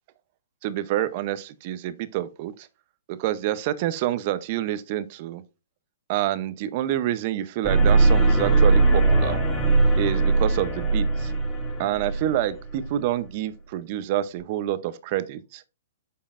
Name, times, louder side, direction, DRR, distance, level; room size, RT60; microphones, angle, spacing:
voice 1, 0.6-2.7 3.1-5.4 6.1-9.4 10.0-11.3 11.8-15.6, right 12 dB, 40° right, 0.6 m, -27 dB
sound 1, 7.6-12.9, right 3 dB, 15° left, 2.6 m, -20 dB
8.5 x 5.5 x 2.5 m
hypercardioid pair, 145°, 0 cm